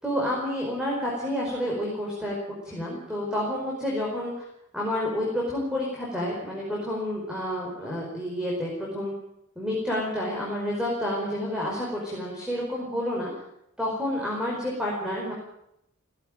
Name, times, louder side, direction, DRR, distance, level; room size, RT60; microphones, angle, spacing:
voice 1, 0.0-2.3 2.6-4.4 4.7-9.1 9.5-13.3 13.8-15.3, left 1 dB, 5° right, -3 dB, 5.1 m, -29 dB
17.5 x 16.5 x 9.1 m, 0.80 s
head